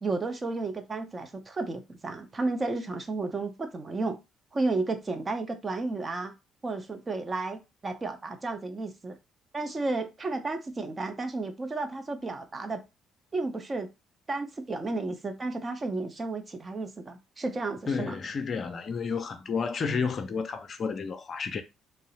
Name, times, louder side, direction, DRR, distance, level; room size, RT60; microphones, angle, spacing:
voice 1, 0.0-4.2 4.5-6.3 6.6-9.2 9.5-12.8 13.3-13.9 14.3-18.2, right 3 dB, 30° right, 0.6 m, -32 dB
voice 2, 17.9-21.6, left 5 dB, 45° left, 0.4 m, -31 dB
2.7 x 2.0 x 2.8 m
figure-of-eight pair, 45°, 0 cm